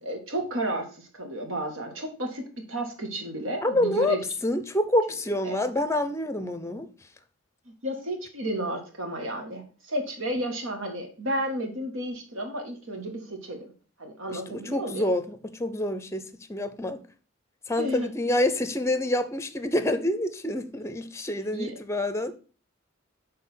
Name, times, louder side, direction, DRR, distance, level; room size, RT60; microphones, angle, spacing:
voice 1, 0.0-4.2 5.4-5.5 7.7-13.7 14.0-15.1 17.8-18.4 21.5-21.8, right 1 dB, 85° right, 1.7 m, -32 dB
voice 2, 3.6-6.9 14.3-17.0 17.7-22.3, left 1 dB, 15° left, 0.6 m, -27 dB
6.5 x 3.8 x 5.6 m
head